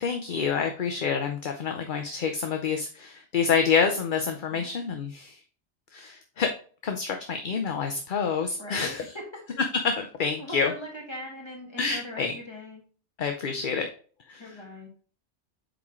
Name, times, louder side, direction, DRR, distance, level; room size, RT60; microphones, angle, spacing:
voice 1, 0.0-5.4 5.9-6.5 6.8-9.0 10.0-10.7 11.8-12.3 13.2-13.9 14.3-14.4, left 6 dB, 50° left, 5 dB, 0.7 m, -28 dB
voice 2, 8.6-9.2 10.4-12.8 14.4-14.9, equal, 25° left, -1 dB, 2.1 m, -40 dB
8.6 x 3.7 x 3.0 m, 0.42 s
omnidirectional pair, 1.2 m